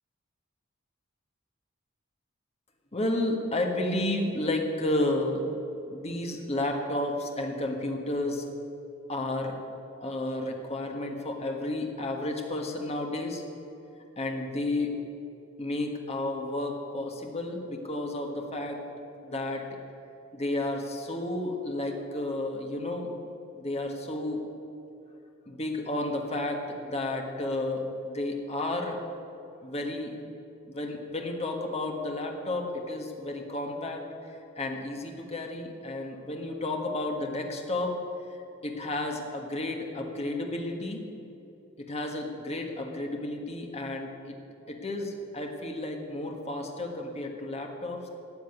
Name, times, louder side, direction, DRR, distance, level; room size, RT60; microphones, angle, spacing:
voice 1, 2.9-5.4 5.9-8.4 9.1-9.6 10.0-13.4 14.2-15.0 15.6-18.8 19.2-19.7 20.3-23.1 23.5-24.4 25.5-29.0 29.6-30.1 30.7-37.9 38.3-41.0 41.8-44.3 44.7-48.1, left 1 dB, 30° left, 2 dB, 1.6 m, -32 dB
13.0 x 7.9 x 9.4 m, 2.8 s
head